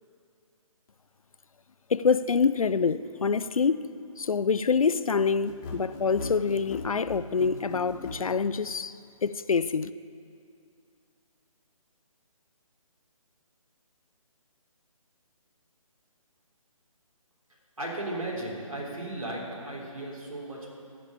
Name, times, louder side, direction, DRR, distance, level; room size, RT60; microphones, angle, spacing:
voice 1, 1.9-3.9 4.2-8.9 9.2-9.9, left 5 dB, 70° left, 0.4 m, -26 dB
sound 1, 5.4-8.2, left 4 dB, 25° left, 1.4 m, -38 dB
voice 2, 17.8-20.7, right 1 dB, 70° right, 3.4 m, -35 dB
14.5 x 5.2 x 8.7 m
figure-of-eight pair, 145°, 18 cm